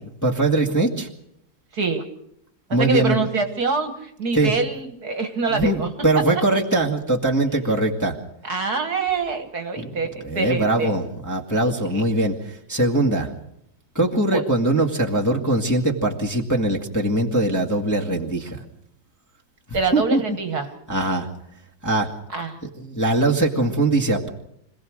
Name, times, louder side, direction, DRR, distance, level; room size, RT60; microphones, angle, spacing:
voice 1, 0.2-1.1 2.7-3.2 4.3-4.5 5.5-8.2 9.8-9.9 10.2-13.3 14.0-18.6 19.7-20.4 20.9-21.3 21.8-22.1 22.6-24.3, right 2 dB, 10° left, -1 dB, 1.8 m, -21 dB
voice 2, 1.7-2.0 2.8-5.9 8.4-10.9 11.9-12.0 14.3-14.4 19.7-20.7 22.3-22.6, right 4 dB, 50° right, 7 dB, 1.9 m, -25 dB
26.0 x 17.0 x 6.5 m, 0.78 s
omnidirectional pair, 2.2 m